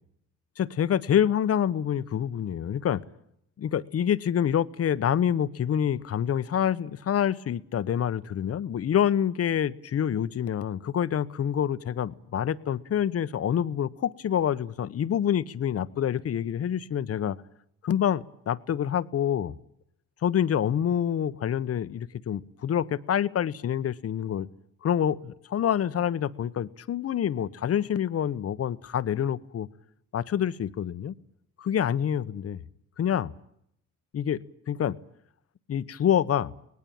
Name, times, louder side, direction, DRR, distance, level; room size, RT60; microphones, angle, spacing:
voice 1, 0.6-3.0 3.6-17.4 17.8-19.5 20.2-24.5 24.8-29.7 30.1-31.1 31.6-32.6 33.0-33.3 34.1-34.4 34.7-35.0 35.7-36.5, left 9 dB, 50° left, 15 dB, 1.0 m, -27 dB
23.5 x 19.0 x 8.8 m, 0.74 s
cardioid pair, 90°, 30 cm